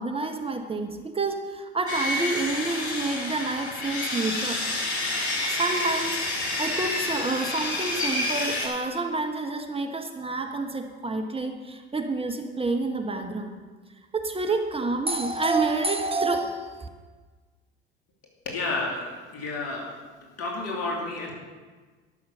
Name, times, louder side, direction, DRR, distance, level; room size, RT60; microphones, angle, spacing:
voice 1, 0.0-4.6 5.4-13.5 14.1-16.9, right 3 dB, 15° right, 4 dB, 1.3 m, -28 dB
Sawing, 1.9-8.7, left 2 dB, 85° left, 2.5 m, -29 dB
voice 2, 18.4-19.0 19.3-19.9 20.2-21.3, left 3 dB, 50° left, -1 dB, 3.0 m, -30 dB
13.0 x 6.5 x 6.8 m, 1.4 s
figure-of-eight pair, 65°, 32 cm